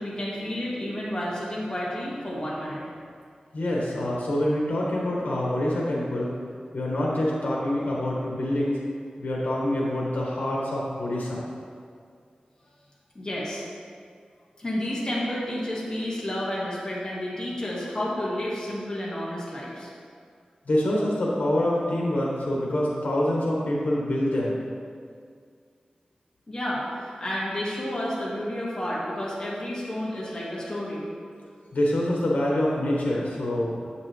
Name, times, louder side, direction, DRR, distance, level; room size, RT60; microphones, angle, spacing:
voice 1, 0.0-2.8 13.2-13.6 14.6-19.9 26.5-31.0, left 1 dB, 30° left, -6 dB, 1.8 m, -31 dB
voice 2, 3.5-6.3 6.7-8.8 9.2-11.4 20.6-24.6 31.7-33.8, left 1 dB, 75° left, -4 dB, 1.4 m, -26 dB
7.9 x 5.9 x 3.3 m, 2.1 s
wide cardioid pair, 95°, 3 cm